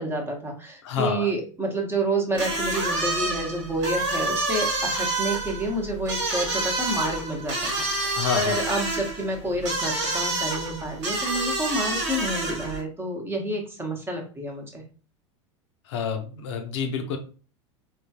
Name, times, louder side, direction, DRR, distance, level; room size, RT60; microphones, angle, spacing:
voice 1, 0.0-14.8, right 1 dB, 15° right, 2 dB, 1.0 m, -29 dB
voice 2, 0.8-1.3 8.1-8.6 15.9-17.2, left 6 dB, 65° left, 5 dB, 0.6 m, -28 dB
sound 1, 2.3-12.8, right 2 dB, 70° right, 1.4 m, -28 dB
3.5 x 2.3 x 2.8 m, 0.38 s
hypercardioid pair, 90°, 16 cm